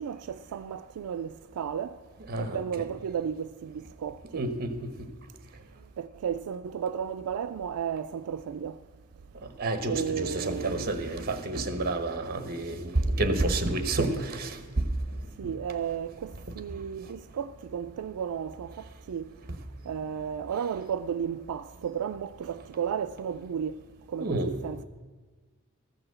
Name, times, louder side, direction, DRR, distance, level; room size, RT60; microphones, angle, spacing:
voice 1, 0.0-2.0 2.4-4.4 6.0-8.8 9.9-11.1 15.4-19.3 19.9-23.8 24.1-24.8, right 7 dB, 85° right, 0.3 m, -34 dB
voice 2, 2.3-2.6 4.3-4.7 9.6-14.6 24.2-24.5, right 2 dB, 45° right, 1.1 m, -29 dB
13.5 x 5.9 x 7.8 m
head